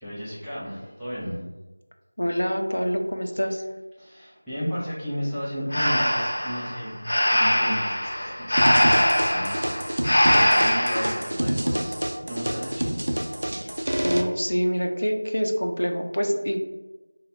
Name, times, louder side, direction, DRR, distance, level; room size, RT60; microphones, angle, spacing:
voice 1, 0.0-1.5 4.0-12.0 12.3-13.1, equal, ahead, -20 dB, 0.5 m, -33 dB
voice 2, 2.2-3.6 14.0-16.6, equal, 75° left, 3 dB, 0.5 m, -25 dB
Breathing, 5.7-11.2, equal, 40° left, 0.8 m, -22 dB
sound 1, 8.6-14.2, right 1 dB, 50° right, 0.4 m, -27 dB
3.2 x 2.1 x 4.1 m, 1.1 s
figure-of-eight pair, 175°, 0 cm